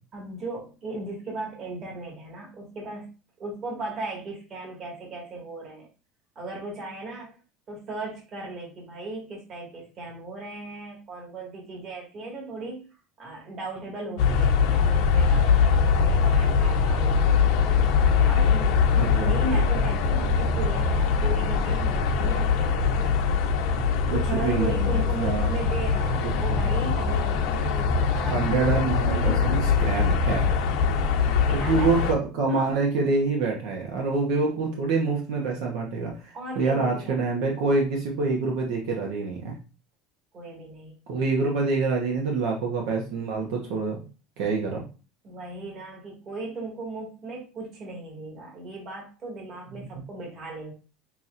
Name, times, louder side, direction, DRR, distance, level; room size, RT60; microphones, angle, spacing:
voice 1, 0.1-3.1 3.4-5.9 6.3-7.3 7.7-12.9 13.2-17.4 18.3-23.2 24.1-28.4 29.1-29.7 31.5-31.9 32.5-32.7 35.4-35.5 36.3-37.2 40.3-40.9 45.2-50.7, right 2 dB, 35° right, -2 dB, 1.8 m, -37 dB
sound 1, 14.2-32.1, left 5 dB, 70° left, 0.8 m, -22 dB
voice 2, 18.9-19.3 24.0-25.5 26.5-26.6 28.3-30.5 31.5-39.6 41.1-44.1 44.4-44.8 49.8-49.9, right 4 dB, 75° right, 0 dB, 1.0 m, -26 dB
6.1 x 2.9 x 2.5 m, 0.33 s
cardioid pair, 150°, 0 cm